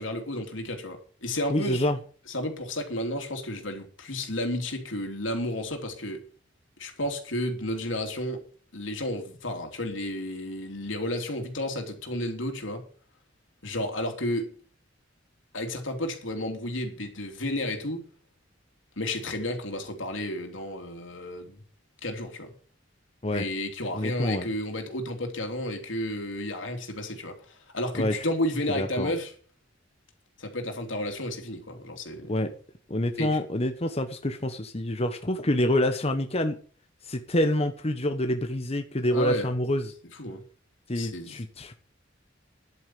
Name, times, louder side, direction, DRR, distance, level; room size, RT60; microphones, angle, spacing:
voice 1, 0.0-1.9 2.3-6.2 6.8-8.4 8.7-12.9 13.6-14.5 15.5-18.0 19.0-21.6 22.0-22.5 23.3-29.3 30.4-32.4 33.2-33.4 39.1-39.5 40.2-40.4 40.9-41.4, left 1 dB, 90° left, 3.3 m, -32 dB
voice 2, 1.5-2.0 23.2-23.5 23.9-24.5 27.9-28.3 28.8-29.1 32.3-32.5 32.9-36.6 37.0-39.9 40.9-41.7, left 1 dB, 35° left, 1.2 m, -27 dB
11.0 x 8.6 x 7.6 m
head